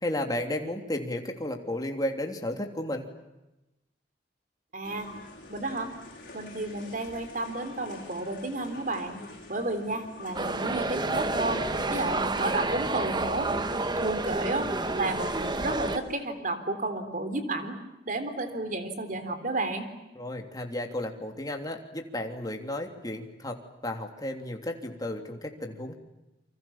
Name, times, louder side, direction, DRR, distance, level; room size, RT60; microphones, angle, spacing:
voice 1, 0.0-3.1 20.1-25.9, left 1 dB, 20° left, 3 dB, 3.2 m, -33 dB
voice 2, 4.7-5.1 5.5-5.9 6.3-9.2 9.5-11.6 11.9-13.5 14.0-14.7 14.9-17.8 18.1-19.9, right 2 dB, 50° right, 9 dB, 3.7 m, -32 dB
sound 1, 4.8-16.1, left 2 dB, 50° left, 7.8 m, -47 dB
sound 2, 10.3-16.0, right 2 dB, 25° right, 1.3 m, -29 dB
29.0 x 25.5 x 7.4 m, 0.97 s
head